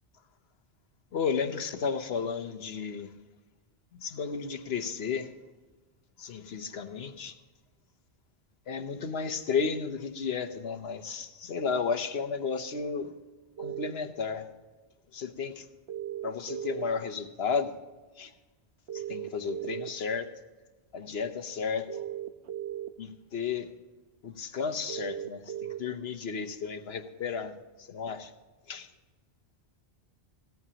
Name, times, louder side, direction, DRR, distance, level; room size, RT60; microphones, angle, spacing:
voice 1, 1.1-3.1 3.9-5.3 6.2-7.3 8.7-13.1 13.6-14.5 15.1-15.7 16.2-17.8 18.2-18.3 18.9-20.3 20.9-22.0 23.0-23.7 24.2-28.3 28.7-28.9, left 5 dB, 70° left, 1.1 m, -33 dB
sound 1, 13.6-13.9 15.9-16.9 18.9-19.9 21.9-22.9 24.9-25.8, right 11 dB, 85° right, 1.0 m, -36 dB
16.5 x 14.0 x 2.9 m
omnidirectional pair, 1.1 m